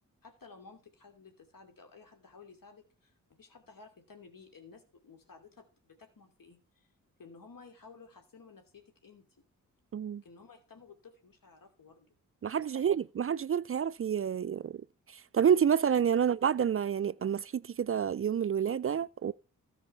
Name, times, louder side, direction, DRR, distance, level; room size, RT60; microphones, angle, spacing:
voice 1, 0.2-6.9 7.2-9.3 10.2-12.1 12.4-13.0 16.1-16.2, left 4 dB, 60° left, 2.8 m, -55 dB
voice 2, 9.9-10.2 12.4-14.8 15.1-19.3, right 8 dB, 40° right, 0.4 m, -29 dB
13.5 x 5.3 x 5.7 m
supercardioid pair, 40°, 37 cm